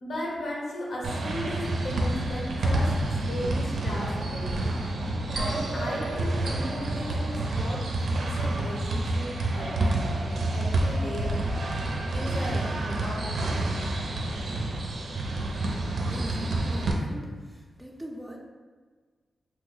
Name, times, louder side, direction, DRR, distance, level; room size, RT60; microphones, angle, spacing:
voice 1, 0.0-2.9 3.2-4.7 5.3-11.3 12.0-13.7, left 1 dB, 80° left, -4 dB, 0.9 m, -36 dB
sound 1, 1.0-16.9, right 2 dB, 75° right, 0.4 m, -28 dB
voice 2, 16.1-18.4, equal, 10° right, 0 dB, 0.4 m, -41 dB
3.0 x 2.0 x 3.8 m, 1.5 s
wide cardioid pair, 125°, 0 cm